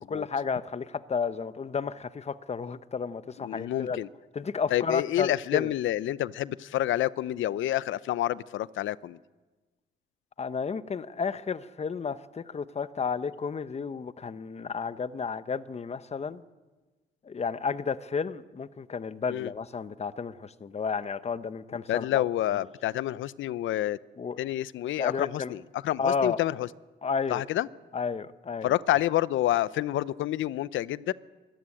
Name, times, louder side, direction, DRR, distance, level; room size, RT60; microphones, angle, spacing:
voice 1, 0.1-4.0 4.3-5.7 10.4-16.4 17.2-22.3 24.2-24.4 25.0-25.5 26.0-26.4 27.0-27.4 27.9-28.7, left 5 dB, 35° left, 14 dB, 1.0 m, -32 dB
voice 2, 3.4-4.1 4.7-9.2 19.3-19.5 21.9-24.0 24.4-26.7 27.3-27.7 28.6-31.1, left 13 dB, 75° left, 19 dB, 0.7 m, -28 dB
24.5 x 14.0 x 9.9 m, 1.2 s
cardioid pair, 90°, 20 cm